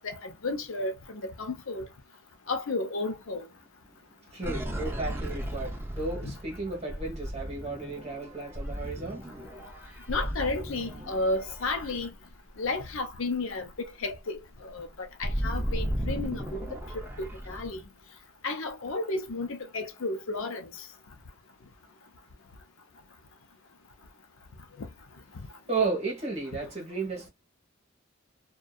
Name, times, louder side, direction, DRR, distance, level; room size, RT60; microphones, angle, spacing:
voice 1, 0.0-1.9 2.5-3.5 6.2-6.3 10.1-12.1 12.6-16.7 17.2-17.8 18.4-20.7 24.8-24.9, left 2 dB, 70° left, 0.6 m, -33 dB
voice 2, 3.9-9.6 25.7-27.3, right 3 dB, 30° right, 1.1 m, -34 dB
sound 1, 4.4-12.8 13.2-13.4 13.7-17.8, equal, 10° right, 0.5 m, -35 dB
2.6 x 2.2 x 2.2 m
head